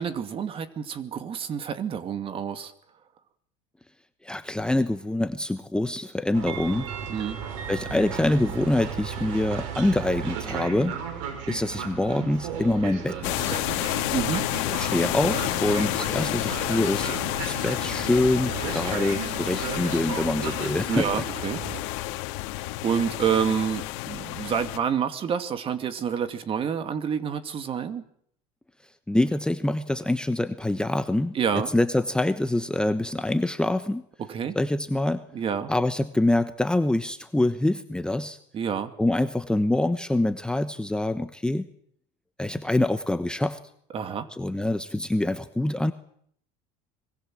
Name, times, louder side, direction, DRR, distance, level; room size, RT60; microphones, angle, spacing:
voice 1, 0.0-2.7 7.1-7.4 14.1-14.5 20.9-21.6 22.8-28.0 31.3-31.7 34.3-34.6 35.3-35.7 38.5-38.9 43.9-44.3, right 7 dB, 35° right, 10 dB, 2.4 m, -28 dB
voice 2, 4.2-6.9 7.7-10.9 11.5-13.6 14.6-17.1 17.4-21.2 29.1-31.4 31.7-34.0 34.5-35.2 35.7-38.4 39.0-41.7 42.4-43.6 44.3-45.9, left 1 dB, 5° left, 9 dB, 1.1 m, -25 dB
Train, 6.3-21.8, right 7 dB, 85° right, 6.1 m, -35 dB
sound 1, 13.2-24.8, left 17 dB, 75° left, 2.1 m, -30 dB
25.0 x 22.0 x 7.7 m, 0.66 s
supercardioid pair, 125°, 16 cm